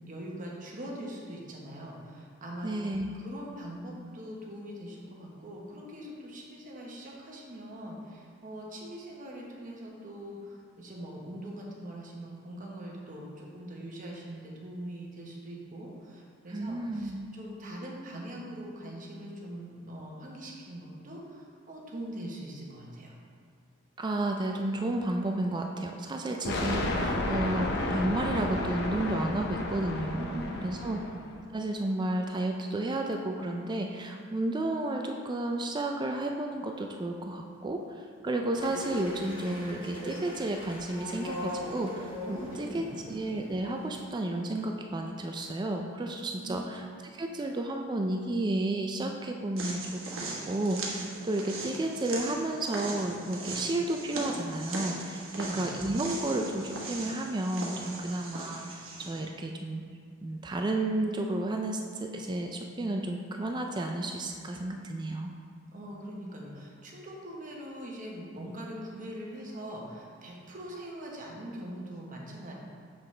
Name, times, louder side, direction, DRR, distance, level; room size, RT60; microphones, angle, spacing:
voice 1, 0.0-23.2 30.2-31.0 42.2-42.9 46.3-46.7 55.3-55.7 65.7-72.5, right 1 dB, 40° right, -2 dB, 1.1 m, -42 dB
voice 2, 2.6-3.1 16.5-17.3 24.0-31.0 31.5-46.9 47.1-59.8 60.2-65.3, right 1 dB, 20° right, 3 dB, 0.3 m, -32 dB
sound 1, 26.4-31.3, left 2 dB, 55° left, 0.6 m, -32 dB
sound 2, 38.5-44.0, left 1 dB, 25° left, 1.2 m, -40 dB
sound 3, 49.6-59.2, right 2 dB, 75° right, 1.1 m, -39 dB
6.7 x 6.0 x 3.3 m, 2.2 s
head